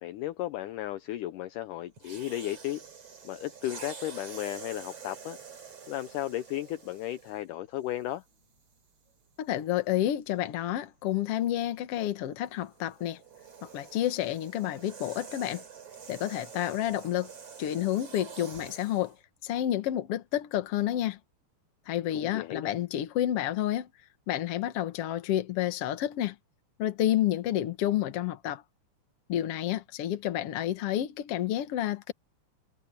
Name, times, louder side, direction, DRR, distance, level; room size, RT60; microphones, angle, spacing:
voice 1, 0.0-2.8 3.2-5.4 5.9-8.2 22.1-22.7, left 14 dB, 80° left, 1.9 m, -35 dB
sound 1, 2.0-7.5 8.3-8.5 12.5-19.2, right 6 dB, 40° right, 4.7 m, -47 dB
voice 2, 9.4-13.2 13.6-15.6 16.1-17.3 17.6-19.1 19.4-21.2 21.9-23.9 24.3-26.4 26.8-28.6 29.3-32.1, left 12 dB, 60° left, 1.7 m, -30 dB
omnidirectional pair, 4.3 m